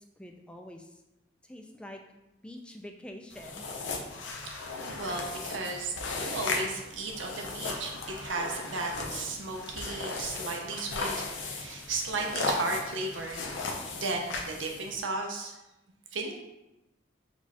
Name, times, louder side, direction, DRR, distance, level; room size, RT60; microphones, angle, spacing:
voice 1, 0.2-0.9 1.4-2.0 2.4-3.7, left 1 dB, 5° left, 3 dB, 0.3 m, -45 dB
sound 1, 3.3-15.0, left 3 dB, 80° left, 0.6 m, -36 dB
voice 2, 4.4-11.1 11.4-13.5 13.9-15.5 16.1-16.4, right 3 dB, 90° right, 1 dB, 0.6 m, -35 dB
4.2 x 2.3 x 4.2 m, 0.93 s
head